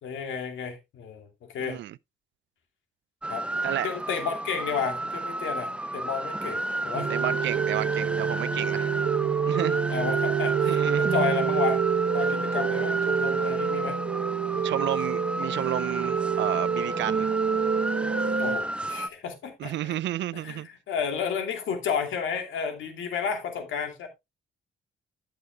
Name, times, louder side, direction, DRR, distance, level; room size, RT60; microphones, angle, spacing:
voice 1, 0.0-1.8 3.3-3.5 3.8-7.1 8.9-9.4 9.9-11.8 12.1-14.0 14.5-14.6 18.4-19.9 20.4-24.1, left 6 dB, 75° left, 2.7 m, -32 dB
voice 2, 1.6-2.0 3.6-3.9 7.1-8.9 9.5-9.8 10.6-11.0 14.6-17.3 19.6-20.7, right 14 dB, 65° right, 0.4 m, -31 dB
sound 1, 3.2-19.1, right 1 dB, 5° right, 0.6 m, -32 dB
sound 2, 6.9-18.6, right 7 dB, 40° right, 1.1 m, -27 dB
14.0 x 6.7 x 2.3 m
cardioid pair, 90°, 20 cm